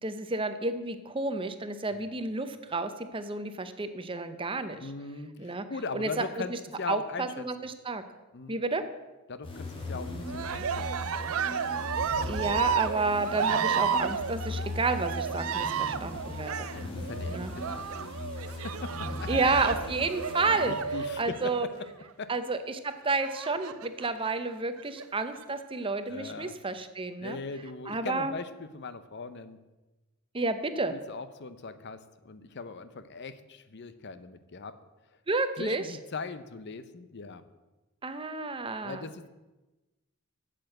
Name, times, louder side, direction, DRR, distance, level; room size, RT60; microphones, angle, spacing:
voice 1, 0.0-4.9 5.4-5.6 5.9-6.2 6.5-6.6 6.9-8.0 8.5-8.8 12.3-16.7 17.3-17.5 19.3-20.8 21.2-21.7 22.3-27.4 27.9-28.3 30.3-30.9 35.3-35.8 38.0-39.0, right 3 dB, 25° right, 10 dB, 0.8 m, -31 dB
voice 2, 4.8-7.5 8.3-8.6 9.3-11.3 15.7-15.9 16.4-19.3 20.6-21.5 22.2-22.3 26.1-26.5 27.2-29.6 30.9-34.8 35.6-37.4 38.8-39.3, left 4 dB, 55° left, 12 dB, 0.7 m, -40 dB
sound 1, 9.4-21.2, left 2 dB, 25° left, 2.2 m, -38 dB
Cheering, 10.2-21.9 23.2-24.1 24.8-25.4, right 7 dB, 90° right, 0.5 m, -32 dB
9.0 x 7.6 x 7.8 m, 1.1 s
head